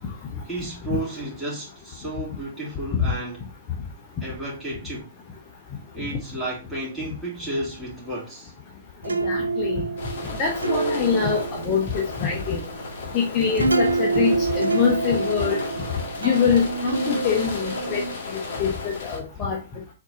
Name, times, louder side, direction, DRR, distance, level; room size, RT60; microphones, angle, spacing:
voice 1, 0.4-3.5 4.2-5.1 5.9-8.5 13.0-13.1, right 1 dB, 5° right, 2.9 m, -32 dB
voice 2, 9.0-9.9 10.4-12.6 13.1-15.7 16.2-18.0 18.3-19.6, left 6 dB, 35° left, 1.1 m, -24 dB
sound 1, 9.0-18.1, right 3 dB, 90° right, 0.4 m, -27 dB
sound 2, 10.0-19.2, left 3 dB, 55° left, 1.8 m, -35 dB
4.3 x 4.2 x 2.8 m
figure-of-eight pair, 115°, 0 cm